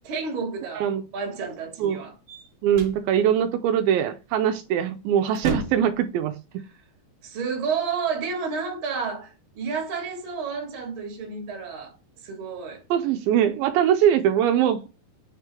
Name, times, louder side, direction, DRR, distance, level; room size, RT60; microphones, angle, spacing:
voice 1, 0.0-2.1 7.2-12.0 12.2-12.8, right 5 dB, 45° right, 1.8 m, -31 dB
sound 1, 2.3-3.0 4.7-4.8 5.2-6.0, right 5 dB, 65° right, 1.7 m, -31 dB
voice 2, 2.6-6.4 12.9-14.9, right 9 dB, 85° right, 2.3 m, -22 dB
6.5 x 3.4 x 4.4 m
omnidirectional pair, 4.2 m